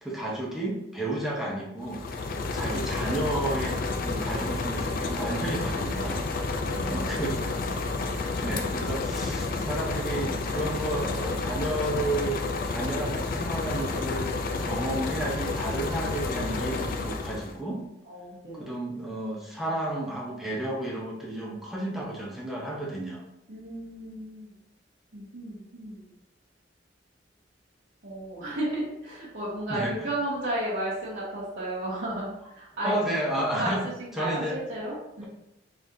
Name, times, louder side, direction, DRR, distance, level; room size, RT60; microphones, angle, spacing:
voice 1, 0.0-6.2 6.9-7.6 8.4-17.8 18.5-23.2 29.7-29.9 32.8-33.8 34.2-34.6, right 1 dB, ahead, -4 dB, 0.7 m, -32 dB
sound 1, 1.8-17.6, left 3 dB, 50° left, 0.4 m, -30 dB
voice 2, 6.6-7.3 9.3-9.5 18.1-18.7 23.5-24.5 25.1-26.1 28.0-32.9 33.5-35.3, right 1 dB, 80° right, -11 dB, 1.2 m, -34 dB
4.0 x 3.2 x 2.6 m, 0.83 s
head